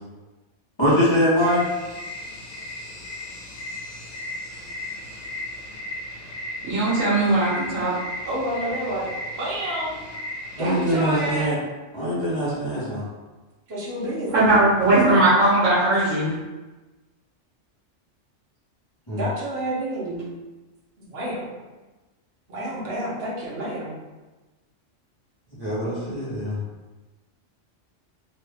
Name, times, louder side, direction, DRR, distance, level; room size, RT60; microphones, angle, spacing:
voice 1, 0.8-1.7 10.6-11.6 11.9-13.0 19.1-19.2 25.6-26.6, equal, 25° left, -11 dB, 1.0 m, -23 dB
sound 1, 1.4-11.5, left 1 dB, 75° left, 1.1 m, -36 dB
voice 2, 6.6-7.9 14.3-16.3, right 2 dB, 85° right, -9 dB, 1.3 m, -19 dB
voice 3, 8.3-9.1 9.4-9.9 10.5-11.6 13.7-14.3 19.2-20.2 21.0-21.5 22.5-24.0, right 1 dB, 55° right, -6 dB, 1.2 m, -29 dB
3.0 x 2.5 x 3.3 m, 1.2 s
omnidirectional pair, 1.3 m